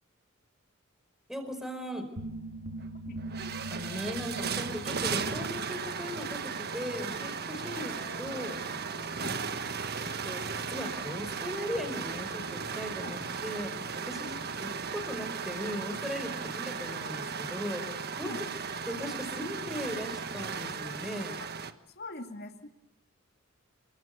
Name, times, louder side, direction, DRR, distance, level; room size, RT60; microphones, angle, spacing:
voice 1, 1.3-2.0 3.7-7.9 8.2-8.6 10.0-13.7 14.0-18.3 18.9-21.4, equal, ahead, 7 dB, 4.8 m, -38 dB
sound 1, 2.2-7.2, right 1 dB, 70° right, 2.1 m, -43 dB
sound 2, 2.8-2.9 3.2-21.7, right 5 dB, 50° right, 1.4 m, -36 dB
sound 3, 7.1-15.1, left 1 dB, 30° left, 4.7 m, -51 dB
voice 2, 22.0-22.7, left 2 dB, 50° left, 5 dB, 2.4 m, -43 dB
29.0 x 23.5 x 6.9 m, 0.78 s
head